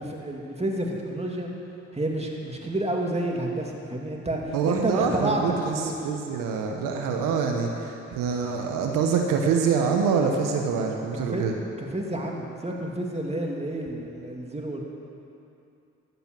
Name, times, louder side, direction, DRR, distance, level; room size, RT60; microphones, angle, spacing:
voice 1, 0.0-1.5 1.9-5.9 11.1-11.4 11.8-14.8, right 1 dB, 20° right, 0 dB, 2.6 m, -30 dB
voice 2, 4.5-11.5, right 5 dB, 85° right, 2 dB, 1.1 m, -25 dB
13.5 x 8.1 x 7.6 m, 2.7 s
supercardioid pair, 50°, 32 cm